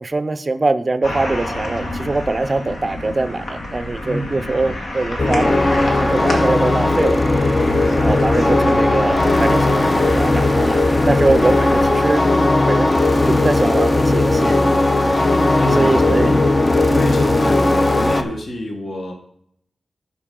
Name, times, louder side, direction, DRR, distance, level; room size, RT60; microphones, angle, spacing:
voice 1, 0.0-7.2 7.9-12.2 12.7-12.9 13.3-14.6 14.9-15.0 15.8-16.4 16.8-17.0, right 3 dB, 30° right, 12 dB, 0.5 m, -22 dB
sound 1, 1.0-11.8, left 1 dB, 75° left, 1.9 m, -28 dB
voice 2, 4.0-4.8 7.6-8.0 15.1-16.4 16.7-19.1, left 1 dB, 45° left, 2 dB, 1.1 m, -28 dB
sound 2, 5.2-18.2, left 2 dB, 25° left, 0.6 m, -17 dB
13.0 x 5.4 x 3.7 m, 0.70 s
wide cardioid pair, 150°, 0 cm